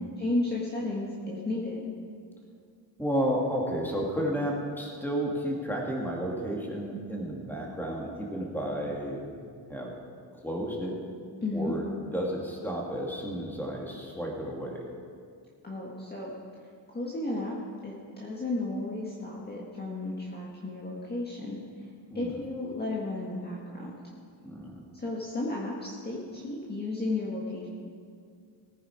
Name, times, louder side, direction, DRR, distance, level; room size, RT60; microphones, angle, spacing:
voice 1, 0.2-1.8 11.4-11.8 15.6-16.3 16.9-17.6 17.8-21.9 22.1-23.9 24.9-27.7, left 2 dB, 20° left, -4 dB, 1.8 m, -33 dB
voice 2, 3.0-9.9 10.4-11.0 11.5-14.8 22.1-22.3 24.4-24.8, equal, 5° left, -2 dB, 2.5 m, -32 dB
19.0 x 9.6 x 5.0 m, 2.2 s
cardioid pair, 130°, 45 cm